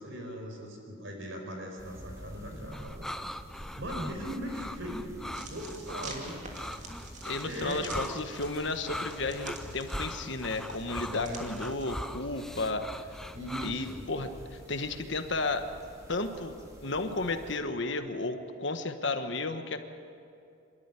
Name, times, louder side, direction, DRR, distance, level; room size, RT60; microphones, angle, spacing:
voice 1, 0.0-3.1 3.8-6.4 7.4-7.8 11.1-11.5 13.3-14.0, equal, 65° right, 2 dB, 4.8 m, -39 dB
sound 1, 1.8-17.6, equal, 15° right, 2.7 m, -48 dB
sound 2, 2.7-14.0, left 1 dB, ahead, 0.5 m, -40 dB
sound 3, 5.3-12.1, right 2 dB, 35° right, 2.7 m, -47 dB
voice 2, 7.2-13.0 13.6-15.7 16.1-19.8, left 3 dB, 60° left, 7 dB, 1.4 m, -33 dB
26.0 x 13.5 x 9.8 m, 2.5 s
head